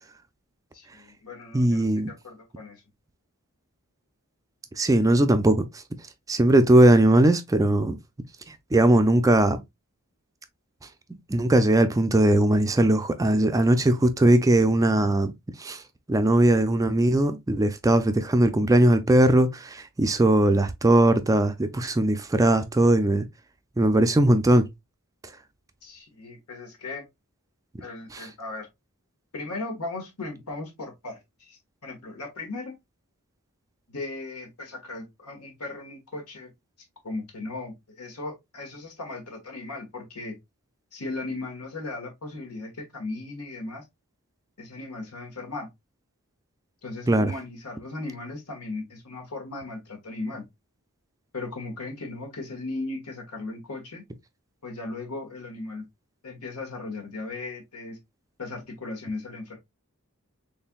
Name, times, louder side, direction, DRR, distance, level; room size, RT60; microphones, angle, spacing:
voice 1, 0.7-2.8 25.8-27.0 27.8-28.7 29.3-32.8 33.9-36.5 37.0-40.4 40.9-43.8 44.6-45.7 46.8-50.4 51.3-54.0 54.6-55.8 56.2-58.0 58.4-59.6, left 2 dB, 85° left, 1.5 m, -37 dB
voice 2, 1.5-2.1 4.8-5.8 6.3-8.0 8.5-9.6 11.3-15.3 15.6-15.8 16.1-23.3 23.8-24.7 28.1-28.3 47.1-47.3, right 1 dB, 15° right, 0.3 m, -20 dB
4.2 x 3.3 x 2.2 m
head